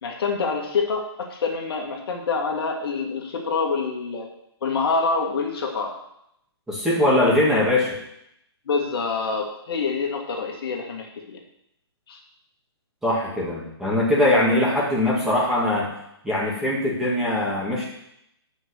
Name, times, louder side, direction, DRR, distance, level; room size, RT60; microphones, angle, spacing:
voice 1, 0.0-4.3 4.6-6.0 8.7-11.4 12.1-12.2, left 4 dB, 60° left, 1 dB, 2.0 m, -26 dB
voice 2, 6.7-8.0 13.0-15.9 16.2-17.8, left 1 dB, 5° right, -6 dB, 2.0 m, -21 dB
7.8 x 5.5 x 6.5 m, 0.77 s
hypercardioid pair, 155°, 14 cm